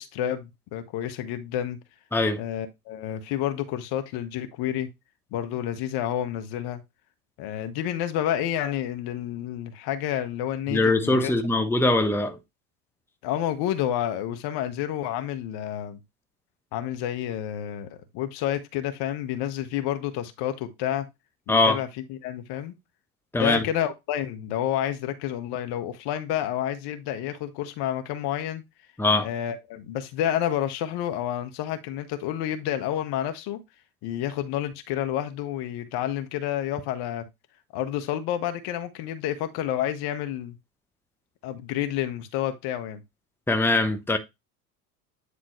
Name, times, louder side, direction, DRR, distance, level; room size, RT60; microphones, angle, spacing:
voice 1, 0.0-1.8 2.4-4.9 5.3-6.8 7.4-11.6 13.2-16.0 16.7-21.1 21.5-22.7 23.3-28.6 29.2-33.6 34.0-37.2 37.7-40.6 41.4-43.0, left 11 dB, 55° left, 1.5 m, -29 dB
voice 2, 10.7-12.4 21.5-21.8 23.3-23.6 29.0-29.3 43.5-44.2, left 2 dB, 5° left, 1.1 m, -22 dB
9.8 x 4.0 x 3.2 m
hypercardioid pair, 85°, 45 cm